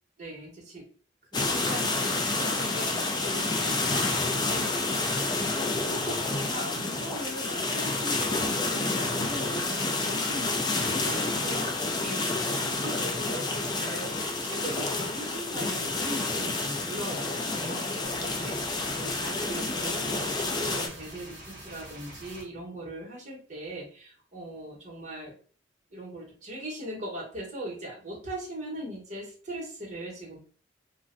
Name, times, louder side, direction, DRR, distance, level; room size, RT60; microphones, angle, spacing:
voice 1, 0.2-0.8 1.3-4.7 5.3-12.2 12.6-14.1 14.4-25.3 25.9-30.4, right 1 dB, 40° right, -3 dB, 1.2 m, -39 dB
sound 1, 1.3-20.9, left 3 dB, 25° left, 0.4 m, -29 dB
sound 2, 18.0-22.4, right 1 dB, 20° right, 1.3 m, -45 dB
2.5 x 2.2 x 3.8 m, 0.42 s
head